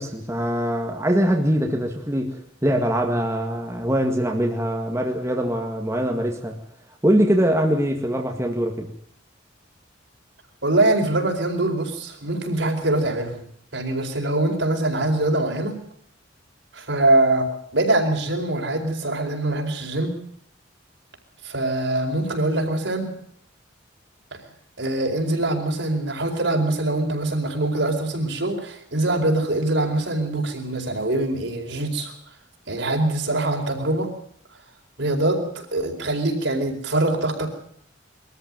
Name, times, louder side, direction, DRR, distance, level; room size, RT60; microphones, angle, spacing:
voice 1, 0.0-6.5 7.0-8.9, equal, 15° right, 1 dB, 2.0 m, -23 dB
voice 2, 10.6-13.4 13.7-15.8 16.7-17.5 17.7-20.1 21.4-23.1 24.8-32.1 32.7-34.1 35.0-37.5, right 2 dB, 65° right, 3 dB, 4.6 m, -23 dB
23.0 x 14.0 x 9.0 m, 0.65 s
head